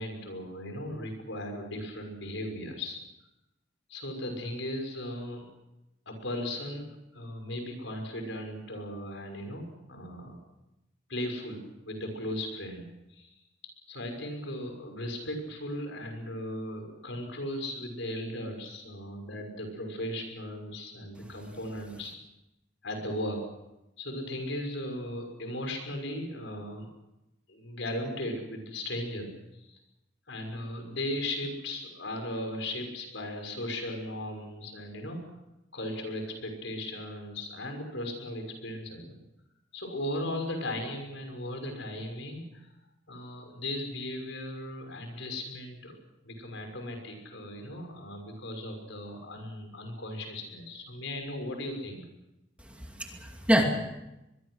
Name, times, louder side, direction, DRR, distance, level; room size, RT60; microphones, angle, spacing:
voice 1, 0.0-3.0 3.9-5.5 6.1-9.6 9.9-10.4 11.1-13.3 13.9-22.1 22.8-23.5 24.0-26.9 27.5-29.3 29.6-29.8 30.3-35.2 35.7-39.2 39.7-42.7 43.1-46.0 46.2-52.0, left 1 dB, 70° left, 4 dB, 6.2 m, -37 dB
voice 2, 52.6-53.6, equal, 5° right, 2 dB, 2.4 m, -26 dB
24.5 x 22.0 x 6.4 m, 0.93 s
head